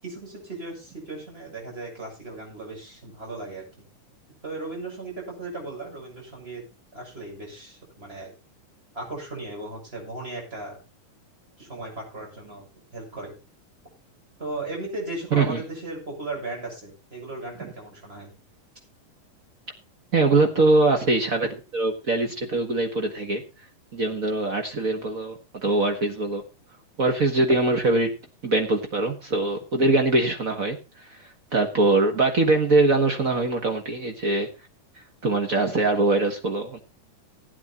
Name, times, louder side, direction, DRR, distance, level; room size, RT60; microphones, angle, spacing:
voice 1, 0.0-3.6 4.4-6.6 6.9-8.3 8.9-10.8 11.6-12.7 12.9-13.3 14.4-18.3, right 2 dB, 15° right, -2 dB, 7.2 m, -36 dB
voice 2, 20.1-23.4 23.9-26.4 27.0-28.1 28.4-34.5 35.2-36.8, right 2 dB, 55° right, 4 dB, 0.9 m, -22 dB
16.0 x 9.3 x 4.3 m, 0.29 s
omnidirectional pair, 3.8 m